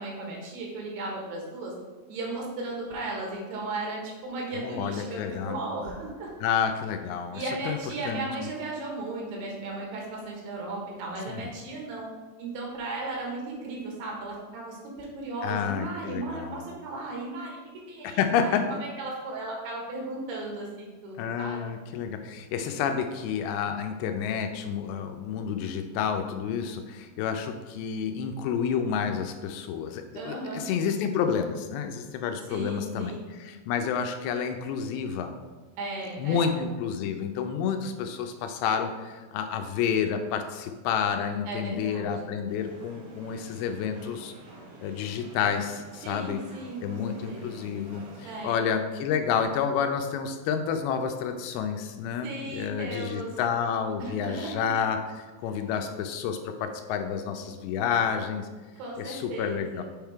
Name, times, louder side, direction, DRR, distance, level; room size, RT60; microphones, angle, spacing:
voice 1, 0.0-1.7 2.1-6.3 7.3-12.1 12.4-17.6 17.9-21.6 30.1-30.6 32.5-33.2 35.8-36.5 41.5-42.2 46.0-47.7 48.2-48.6 52.2-53.3 54.0-54.6 58.8-59.8, right 2 dB, 90° right, -2 dB, 3.4 m, -36 dB
voice 2, 4.6-5.6 6.4-7.8 8.1-8.3 11.3-11.5 15.4-16.6 18.0-18.6 21.2-35.4 36.2-44.3 44.8-46.4 46.8-58.5 59.0-59.8, left 7 dB, 85° left, 6 dB, 2.4 m, -29 dB
sound 1, 42.5-48.4, right 2 dB, 65° right, 1.7 m, -48 dB
7.2 x 3.6 x 4.5 m, 1.3 s
omnidirectional pair, 4.6 m